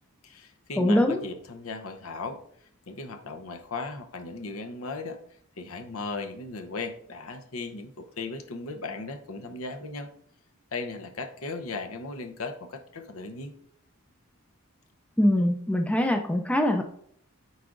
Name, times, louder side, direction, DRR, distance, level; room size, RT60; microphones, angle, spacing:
voice 1, 0.2-2.4 2.9-5.2 5.6-10.1 10.7-13.5, left 3 dB, 70° left, 6 dB, 0.7 m, -37 dB
voice 2, 0.8-1.2 15.2-16.8, left 1 dB, 5° left, 5 dB, 0.4 m, -23 dB
8.2 x 4.7 x 2.5 m, 0.65 s
head